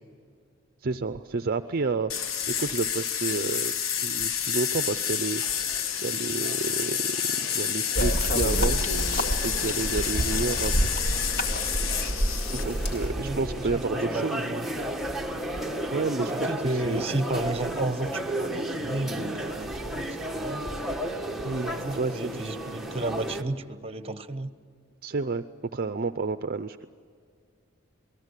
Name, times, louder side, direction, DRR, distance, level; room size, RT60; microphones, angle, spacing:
voice 1, 0.8-2.1 2.6-3.7 4.0-5.4 6.0-8.8 9.4-10.7 12.6-14.4 15.9-17.0 21.4-22.4 25.0-25.4 25.7-26.8, right 3 dB, 50° right, 10 dB, 0.6 m, -30 dB
sound 1, 2.1-12.6, left 8 dB, 70° left, 1.1 m, -29 dB
sound 2, 5.4-23.4, right 1 dB, ahead, 1.4 m, -34 dB
sound 3, 7.9-13.1, equal, 55° left, 2.1 m, -28 dB
voice 2, 13.2-14.7 16.3-20.6 21.6-24.5, right 2 dB, 30° right, 11 dB, 1.2 m, -32 dB
28.0 x 19.5 x 8.3 m, 2.2 s
head